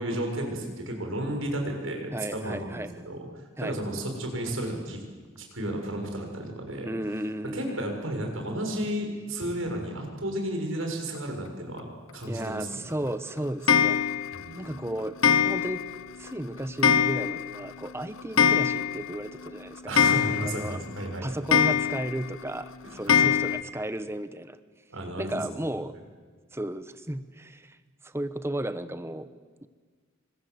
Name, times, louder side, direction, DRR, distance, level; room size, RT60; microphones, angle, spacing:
voice 1, 0.0-5.0 5.4-6.9 7.5-11.9 12.1-12.8 14.3-14.7 19.9-21.4 22.8-23.2 24.9-25.4, right 1 dB, 80° right, 3 dB, 6.8 m, -33 dB
voice 2, 2.1-2.9 3.6-3.7 6.8-7.8 12.3-14.0 14.6-15.2 15.4-15.8 16.2-20.0 20.4-20.8 21.2-24.6 25.2-25.9 26.5-27.8 28.0-29.3, right 1 dB, 10° right, 12 dB, 1.0 m, -34 dB
Clock, 13.7-14.4 15.2-16.0 16.3-16.4 16.8-17.6 17.9-18.0 18.2-19.2 19.5-19.6 20.0-20.8 21.5-22.2 23.1-23.6, left 7 dB, 85° left, 0.9 m, -23 dB
28.0 x 25.5 x 8.1 m, 1.5 s
head